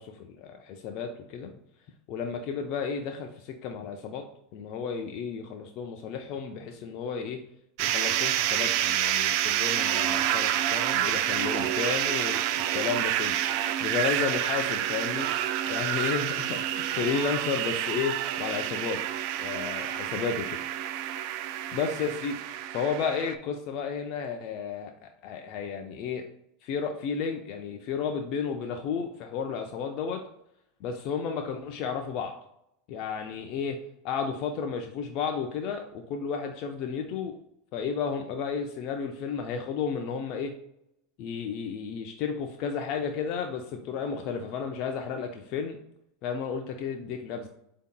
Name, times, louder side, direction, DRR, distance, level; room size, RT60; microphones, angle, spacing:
voice 1, 0.0-1.5 2.1-4.2 4.5-7.4 7.8-12.4 12.7-15.3 15.7-19.0 19.4-20.6 21.7-22.4 22.7-24.9 25.2-26.2 26.6-30.2 30.8-32.3 32.9-33.8 34.0-37.4 37.7-40.5 41.2-45.8 46.2-47.5, left 6 dB, 50° left, 4 dB, 0.5 m, -32 dB
sound 1, 7.8-23.3, right 12 dB, 55° right, 0.3 m, -28 dB
8.1 x 2.8 x 2.2 m, 0.77 s
hypercardioid pair, 85°, 0 cm